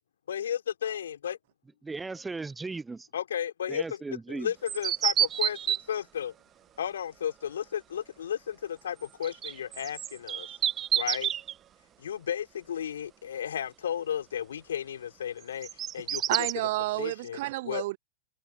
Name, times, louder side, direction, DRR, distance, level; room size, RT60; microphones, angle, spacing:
voice 1, 0.3-1.4 3.1-4.0 4.3-6.3 6.8-10.5 10.9-11.3 12.0-15.7 15.9-16.5 17.0-17.4 17.6-17.8, left 9 dB, 70° left, 3.8 m, -33 dB
voice 2, 1.8-3.1 3.7-4.5, right 3 dB, 10° right, 0.8 m, -37 dB
sound 1, 4.7-5.8 9.2-11.5 15.4-16.5, right 10 dB, 30° right, 1.5 m, -29 dB
voice 3, 16.3-18.0, right 19 dB, 55° right, 0.5 m, -30 dB
figure-of-eight pair, 95°, 0 cm